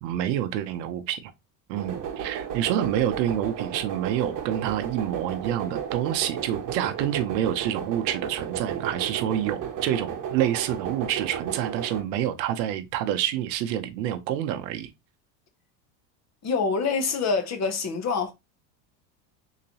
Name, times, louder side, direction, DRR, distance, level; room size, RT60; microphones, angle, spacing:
voice 1, 0.0-1.3 1.7-14.9, right 11 dB, 80° right, 0.8 m, -28 dB
sound 1, 1.8-12.0, right 8 dB, 40° right, 1.0 m, -33 dB
voice 2, 16.4-18.3, left 4 dB, 30° left, 0.9 m, -26 dB
3.9 x 2.9 x 2.8 m
supercardioid pair, 105°, 50 cm